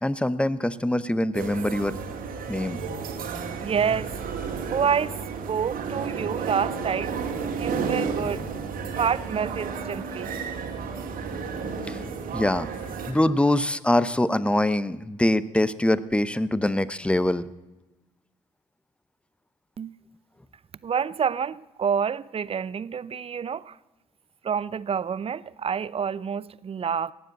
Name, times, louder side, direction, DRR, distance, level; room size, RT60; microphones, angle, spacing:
voice 1, 0.0-2.0 2.5-2.8 11.9-12.0 12.3-12.7 13.1-17.5, left 1 dB, 5° left, 0.8 m, -24 dB
sound 1, 1.3-13.1, right 5 dB, 65° right, 2.2 m, -32 dB
voice 2, 3.5-4.1 4.7-7.2 7.6-8.4 8.9-10.3 19.8-19.9 20.8-23.8 24.4-27.1, right 7 dB, 40° right, 0.6 m, -28 dB
18.0 x 7.7 x 7.8 m
hypercardioid pair, 50°, 16 cm